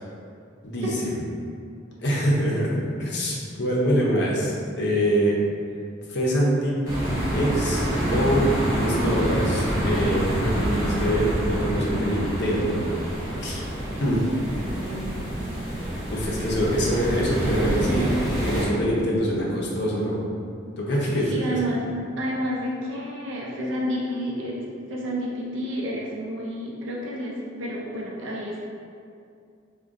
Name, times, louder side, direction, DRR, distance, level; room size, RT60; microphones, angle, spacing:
voice 1, 0.6-1.1 2.0-5.4 6.1-12.9 13.4-13.6 14.0-14.3 16.1-18.1 18.4-20.2 20.8-21.6, equal, 55° left, -4 dB, 0.5 m, -24 dB
sound 1, 6.8-18.6, equal, 15° right, 0.8 m, -27 dB
voice 2, 14.6-15.1 21.2-21.8 22.2-28.6, equal, 70° right, -4 dB, 0.5 m, -30 dB
3.6 x 2.2 x 2.5 m, 2.4 s
head